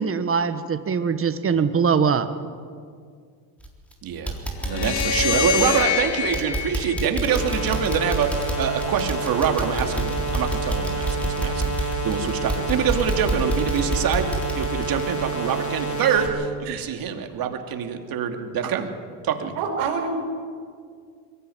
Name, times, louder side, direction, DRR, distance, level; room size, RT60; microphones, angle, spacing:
voice 1, 0.0-2.3, right 6 dB, 30° right, 11 dB, 1.5 m, -22 dB
sound 1, 3.6-3.9 4.3-15.8 16.2-16.3 16.8-16.9, right 1 dB, 5° left, 3.9 m, -29 dB
voice 2, 4.0-4.3 4.6-14.3 14.6-18.9 19.2-19.5, right 7 dB, 50° right, 5 dB, 2.6 m, -25 dB
sound 2, 4.6-7.9, left 7 dB, 85° left, 2.2 m, -26 dB
sound 3, 7.3-16.3, right 3 dB, 40° left, 5.2 m, -29 dB
voice 3, 19.5-20.1, right 6 dB, 80° right, 3 dB, 5.2 m, -27 dB
22.5 x 15.0 x 9.3 m, 2.1 s
supercardioid pair, 105°, 46 cm